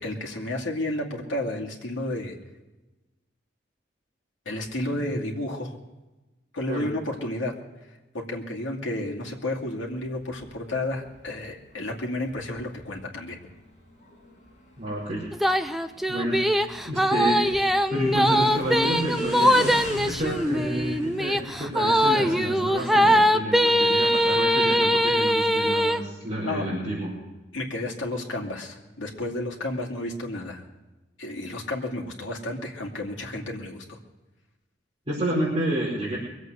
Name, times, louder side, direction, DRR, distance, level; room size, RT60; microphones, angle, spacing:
voice 1, 0.0-2.3 4.5-5.7 6.5-7.5 8.1-13.4 26.4-26.7 27.5-30.6 31.2-34.0, left 1 dB, 85° left, -1 dB, 2.5 m, -31 dB
voice 2, 4.9-5.3 6.7-6.9 14.8-15.2 16.1-17.5 17.9-27.1 35.1-36.2, right 1 dB, 30° right, -8 dB, 5.0 m, -29 dB
Motorcycle, 9.7-22.7, left 1 dB, 40° left, 5.6 m, -43 dB
sound 1, 15.3-26.0, equal, ahead, 0.5 m, -22 dB
23.5 x 8.2 x 6.5 m, 1.1 s
head